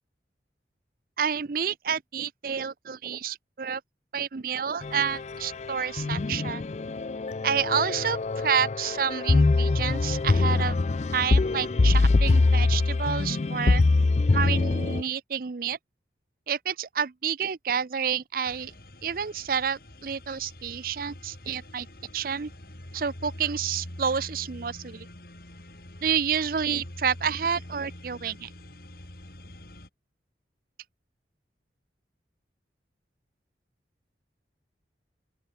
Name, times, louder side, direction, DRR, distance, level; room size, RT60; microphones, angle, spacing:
voice 1, 1.2-3.8 4.1-6.6 7.4-10.8 11.1-13.8 14.3-15.8 16.5-18.7 19.0-21.9 22.1-22.5 22.9-25.1 26.0-28.5, right 7 dB, 50° right, 0.5 m, -29 dB
sound 1, 4.8-15.0, left 3 dB, 40° left, 0.4 m, -24 dB
sound 2, 18.4-29.9, left 1 dB, 55° left, 4.1 m, -44 dB
open air
head